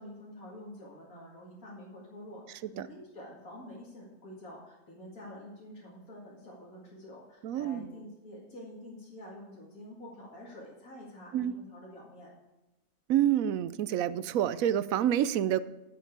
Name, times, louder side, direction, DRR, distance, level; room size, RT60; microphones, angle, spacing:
voice 1, 0.0-12.3, left 1 dB, 80° left, -6 dB, 2.8 m, -48 dB
voice 2, 7.4-7.8 11.3-11.6 13.1-15.6, right 11 dB, 75° right, 15 dB, 1.0 m, -28 dB
12.0 x 8.0 x 4.7 m, 1.1 s
omnidirectional pair, 1.5 m